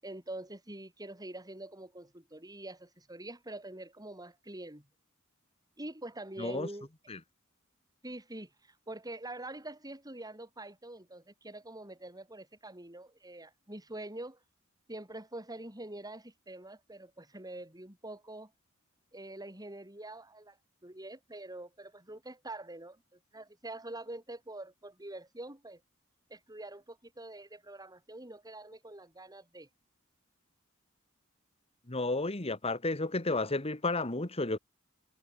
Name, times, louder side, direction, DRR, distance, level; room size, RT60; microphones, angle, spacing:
voice 1, 0.0-4.9 5.8-6.9 8.0-14.4 14.9-18.5 19.1-20.6 20.8-25.8 26.3-29.7, right 1 dB, 20° right, 7.7 m, -45 dB
voice 2, 31.9-34.6, left 2 dB, 30° left, 1.8 m, -32 dB
head